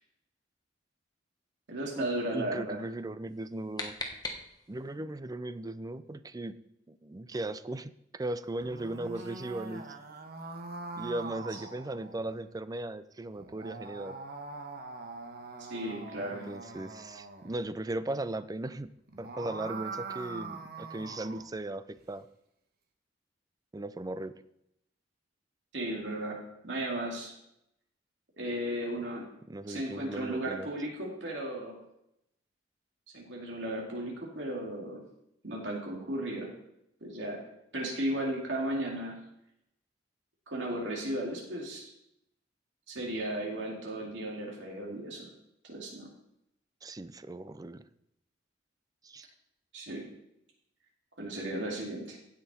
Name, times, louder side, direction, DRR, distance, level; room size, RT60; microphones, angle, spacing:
voice 1, 1.7-2.8 15.6-16.5 25.7-27.4 28.4-29.2 29.7-31.8 33.1-35.0 35.4-36.5 37.0-37.4 37.7-39.2 40.5-41.9 42.9-45.3 45.6-46.1 49.7-50.1 51.2-52.2, right 1 dB, 75° right, -1 dB, 2.3 m, -35 dB
voice 2, 2.3-4.0 4.7-6.6 6.9-9.9 11.0-14.2 16.5-18.9 19.2-22.3 23.7-24.4 29.5-30.7 46.8-47.8 49.0-49.3, right 2 dB, 20° right, 14 dB, 0.4 m, -37 dB
sound 1, 3.3-4.9, left 2 dB, 20° left, 1.2 m, -40 dB
sound 2, 8.5-12.4 13.4-17.6 19.0-21.5, right 3 dB, 55° right, 1.2 m, -43 dB
16.0 x 6.0 x 4.2 m, 0.79 s
head